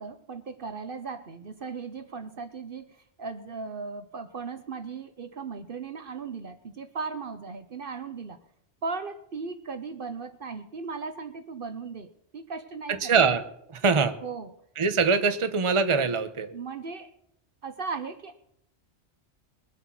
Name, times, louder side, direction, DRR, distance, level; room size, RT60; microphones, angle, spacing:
voice 1, 0.0-8.4 8.8-13.2 14.2-14.5 16.5-17.1 17.6-18.4, right 4 dB, 55° right, 10 dB, 1.0 m, -37 dB
voice 2, 12.9-13.4 13.7-14.2 14.8-16.5, right 5 dB, 30° right, 9 dB, 0.9 m, -23 dB
22.0 x 8.1 x 5.9 m, 0.75 s
omnidirectional pair, 1.2 m